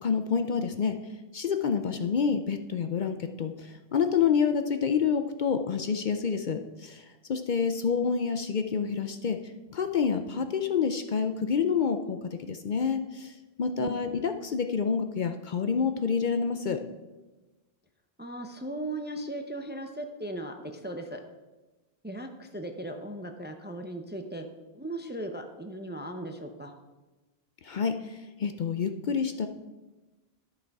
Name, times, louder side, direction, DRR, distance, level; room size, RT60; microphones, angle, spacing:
voice 1, 0.0-1.0 1.3-9.4 9.7-13.3 13.6-16.8 27.6-29.5, left 6 dB, 55° left, 7 dB, 0.6 m, -28 dB
voice 2, 13.8-14.2 18.2-21.2 22.0-24.5 24.7-26.7, right 1 dB, 15° right, 5 dB, 0.5 m, -37 dB
11.0 x 6.6 x 4.7 m, 1.2 s
omnidirectional pair, 1.1 m